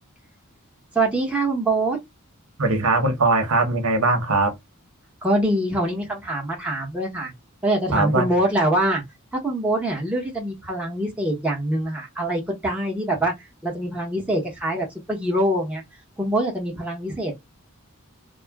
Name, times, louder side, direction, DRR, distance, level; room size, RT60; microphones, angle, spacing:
voice 1, 0.9-2.0 5.2-7.3 7.6-9.0 9.4-13.3 13.6-15.8 16.2-17.3, right 1 dB, 5° right, 1.0 m, -24 dB
voice 2, 2.6-4.5 7.9-8.3, right 3 dB, 85° right, 0.9 m, -20 dB
2.4 x 2.1 x 3.4 m
head